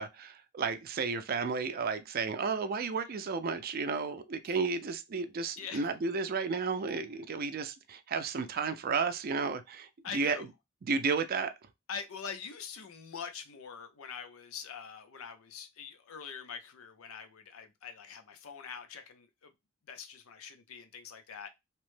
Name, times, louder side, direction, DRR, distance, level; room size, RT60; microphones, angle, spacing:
voice 1, 0.0-10.5 10.8-11.5, right 5 dB, 45° right, 0.4 m, -33 dB
voice 2, 5.6-5.9 10.0-10.4 11.9-19.5 19.9-21.5, left 6 dB, 85° left, 0.6 m, -44 dB
2.9 x 2.1 x 3.1 m
head